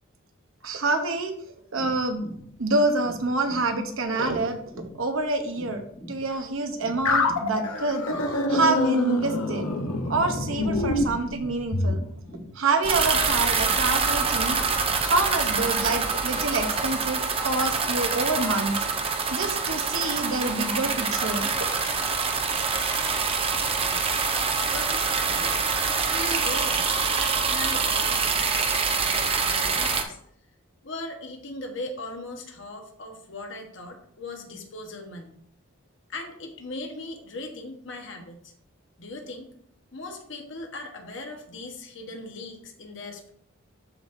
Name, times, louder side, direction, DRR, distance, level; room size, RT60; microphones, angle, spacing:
voice 1, 0.6-1.3 1.7-2.2 2.6-4.6 5.0-8.0 8.5-9.7 10.1-12.0 12.6-14.6 15.0-18.8 19.3-21.5, right 2 dB, 70° right, 6 dB, 0.8 m, -27 dB
sound 1, 1.8-12.5, equal, 10° left, 1.1 m, -44 dB
sound 2, 7.1-12.0, left 2 dB, 85° left, 0.9 m, -26 dB
sound 3, 12.8-30.0, right 5 dB, 25° right, 0.5 m, -25 dB
voice 2, 23.8-24.2 24.7-25.6 26.1-30.2 30.8-35.3 36.1-38.5 39.0-39.5 39.9-43.3, left 2 dB, 60° left, 3 dB, 1.2 m, -38 dB
12.0 x 4.1 x 2.6 m, 0.67 s
head